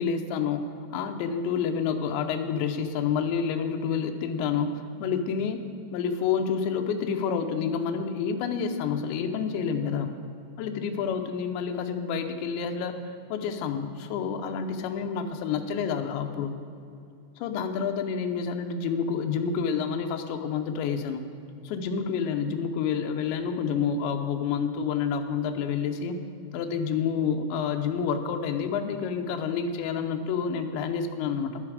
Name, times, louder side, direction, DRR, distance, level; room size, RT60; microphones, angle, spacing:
voice 1, 0.0-5.6 5.9-10.1 10.6-16.5 17.4-21.2 21.6-26.2 26.5-31.6, left 6 dB, 80° left, 5 dB, 2.6 m, -29 dB
11.0 x 10.5 x 4.9 m, 2.5 s
omnidirectional pair, 6.0 m